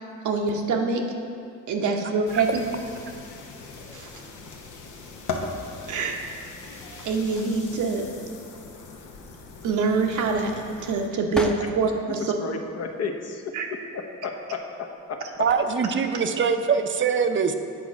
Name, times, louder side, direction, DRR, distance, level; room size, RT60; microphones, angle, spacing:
voice 1, 0.2-1.0 1.7-2.5 3.9-4.1 5.9-6.2 7.0-8.0 9.6-12.3 13.5-13.7, right 4 dB, 80° right, 0.9 m, -25 dB
sound 1, 2.3-11.1, left 4 dB, 85° left, 0.9 m, -39 dB
sound 2, 9.6-12.1 12.5-13.4 14.3-14.6 15.0-15.8, equal, ahead, 0.6 m, -37 dB
voice 2, 12.4-15.5, left 4 dB, 55° left, 0.9 m, -33 dB
voice 3, 15.4-17.5, right 6 dB, 40° right, 0.6 m, -23 dB
8.2 x 4.1 x 5.9 m
cardioid pair, 75°, 30 cm